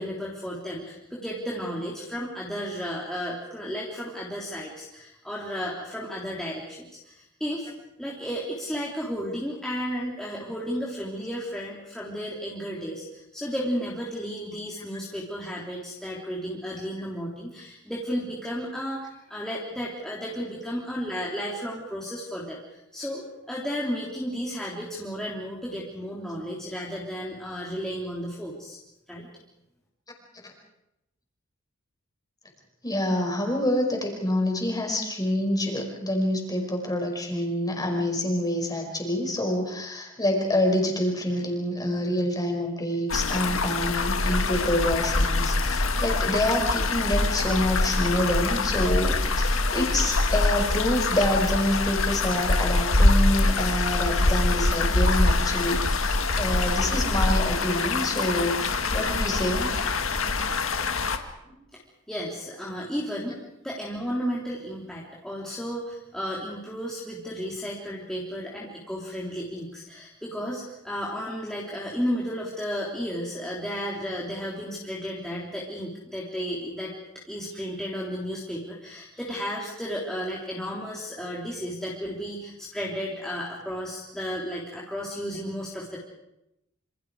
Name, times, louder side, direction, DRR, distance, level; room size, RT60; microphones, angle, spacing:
voice 1, 0.0-7.7 8.0-28.8 29.1-29.3 61.7-61.8 62.1-76.9 77.3-86.0, equal, ahead, -6 dB, 3.4 m, -33 dB
voice 2, 32.8-59.7, left 1 dB, 20° left, 2 dB, 5.4 m, -27 dB
sound 1, 43.1-61.2, left 2 dB, 70° left, 1.9 m, -24 dB
28.0 x 26.5 x 4.9 m, 0.87 s
head